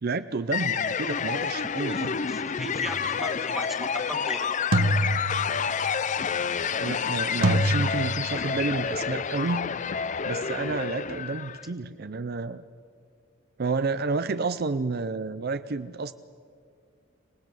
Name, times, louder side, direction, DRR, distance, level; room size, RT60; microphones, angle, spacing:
voice 1, 0.0-2.2 6.8-9.7 10.3-12.6 13.6-16.1, right 3 dB, 50° right, 12 dB, 0.5 m, -30 dB
sound 1, 0.5-11.7, left 6 dB, 40° left, 0.5 m, -29 dB
voice 2, 1.9-4.5, equal, ahead, 5 dB, 1.5 m, -38 dB
sound 2, 2.9-3.2 4.7-5.9 7.4-8.6, right 1 dB, 80° right, 1.2 m, -26 dB
25.5 x 18.5 x 7.6 m, 2.2 s
head